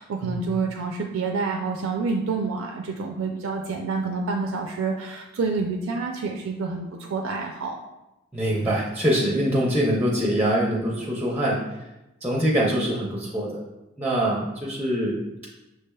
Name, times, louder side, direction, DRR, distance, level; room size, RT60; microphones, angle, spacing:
voice 1, 0.0-7.7, right 4 dB, 75° right, 2 dB, 0.4 m, -28 dB
voice 2, 8.3-11.6 12.2-13.6 14.0-15.2, equal, 10° right, -3 dB, 0.5 m, -24 dB
6.4 x 3.2 x 2.2 m, 0.98 s
head